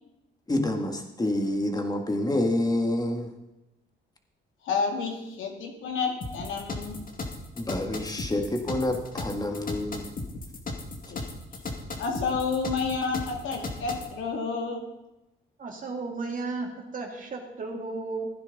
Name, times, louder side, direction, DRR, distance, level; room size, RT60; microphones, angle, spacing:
voice 1, 0.5-3.3 7.6-10.1, left 1 dB, 20° left, 4 dB, 1.9 m, -28 dB
voice 2, 4.6-7.0 11.1-11.2 12.0-14.8, left 4 dB, 80° left, 1 dB, 2.6 m, -30 dB
sound 1, 6.2-14.1, left 3 dB, 45° left, 2.1 m, -36 dB
voice 3, 15.6-18.3, right 3 dB, 40° right, 1 dB, 2.6 m, -34 dB
15.5 x 9.8 x 4.1 m, 0.94 s
cardioid pair, 90°, 20 cm